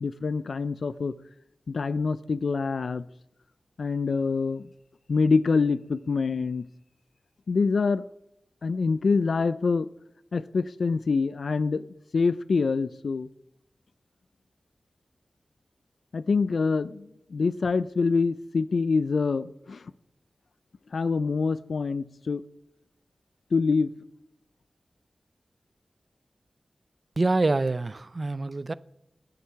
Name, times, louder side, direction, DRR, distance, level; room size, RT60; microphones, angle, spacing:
voice 1, 0.0-1.1 1.7-3.0 3.8-4.7 5.1-6.7 7.5-8.1 8.6-9.9 10.3-11.9 12.1-13.3 16.1-19.8 20.9-22.4 23.5-23.9, left 4 dB, 80° left, 0.4 m, -25 dB
voice 2, 27.2-28.7, right 3 dB, 45° right, 0.5 m, -26 dB
19.0 x 7.8 x 5.8 m
wide cardioid pair, 70°, 0 cm